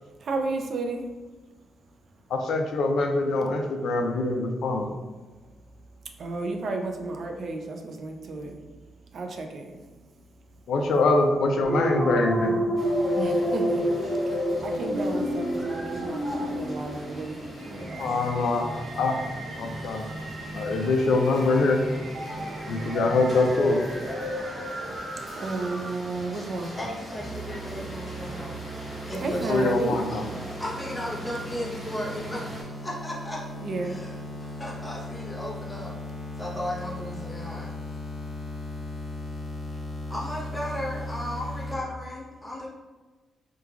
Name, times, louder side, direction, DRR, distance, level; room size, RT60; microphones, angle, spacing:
voice 1, 0.0-1.1 6.2-8.7 9.0-10.1 13.1-18.3 19.9-20.1 25.4-26.8 29.2-30.1 33.6-34.1, right 2 dB, 50° right, 3 dB, 0.3 m, -33 dB
voice 2, 2.3-4.9 10.7-12.6 18.0-18.7 19.0-19.1 19.6-20.0 20.5-21.8 22.7-23.8 29.5-30.3, left 3 dB, 70° left, 3 dB, 0.3 m, -24 dB
sound 1, 11.6-26.2, equal, 75° right, 0.8 m, -31 dB
sound 2, 12.7-32.6, equal, 20° right, 1.0 m, -41 dB
voice 3, 26.8-28.5 29.0-29.7 30.6-33.4 33.8-37.7 40.1-42.7, left 1 dB, 10° left, -5 dB, 0.6 m, -35 dB
sound 3, 27.2-41.8, left 1 dB, 45° left, 0.7 m, -37 dB
3.0 x 2.2 x 2.3 m, 1.3 s
cardioid pair, 145°, 0 cm